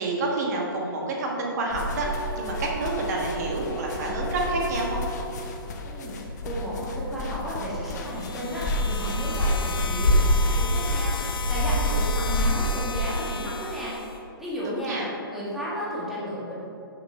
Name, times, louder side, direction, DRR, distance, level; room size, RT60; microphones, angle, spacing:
voice 1, 0.0-2.1 2.4-5.1 14.6-15.1, right 2 dB, 45° right, -1 dB, 1.5 m, -28 dB
sound 1, 1.7-13.0, left 1 dB, 45° left, 0.8 m, -27 dB
sound 2, 2.0-5.9, right 3 dB, 20° left, 0.4 m, -40 dB
voice 2, 5.8-15.0 15.3-16.5, equal, ahead, -9 dB, 1.6 m, -33 dB
sound 3, 8.0-14.2, left 5 dB, 75° left, 0.8 m, -36 dB
6.3 x 5.9 x 4.4 m, 2.9 s
hypercardioid pair, 150°, 12 cm